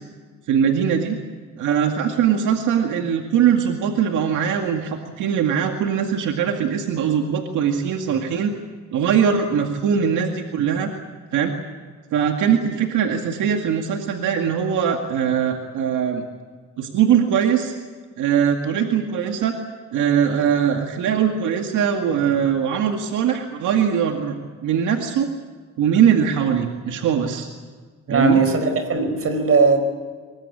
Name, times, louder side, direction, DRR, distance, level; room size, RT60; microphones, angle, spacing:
voice 1, 0.5-1.2 1.6-8.5 8.9-11.0 11.3-11.5 12.1-16.2 16.8-17.7 18.2-19.6 19.9-24.4 24.6-25.3 25.8-27.5 28.1-28.4, right 8 dB, 85° right, 2.2 m, -21 dB
voice 2, 28.1-29.8, right 4 dB, 50° right, 5.1 m, -18 dB
24.0 x 21.5 x 8.6 m
cardioid pair, 90°, 30 cm